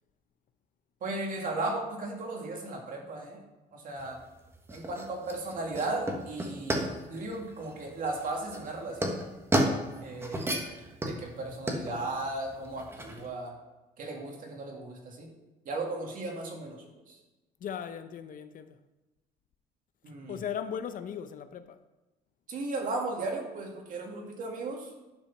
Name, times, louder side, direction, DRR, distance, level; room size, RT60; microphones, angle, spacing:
voice 1, 1.0-3.4 3.7-4.2 4.7-9.1 10.0-10.8 11.1-13.6 14.0-15.3 15.7-17.2 20.0-20.4 22.5-24.9, right 2 dB, 55° right, 2.2 m, -36 dB
sound 1, 4.0-13.2, right 1 dB, 15° right, 1.5 m, -33 dB
voice 2, 17.6-18.8 20.3-21.8, left 8 dB, 55° left, 0.7 m, -37 dB
10.5 x 5.1 x 5.8 m
cardioid pair, 110°, 17 cm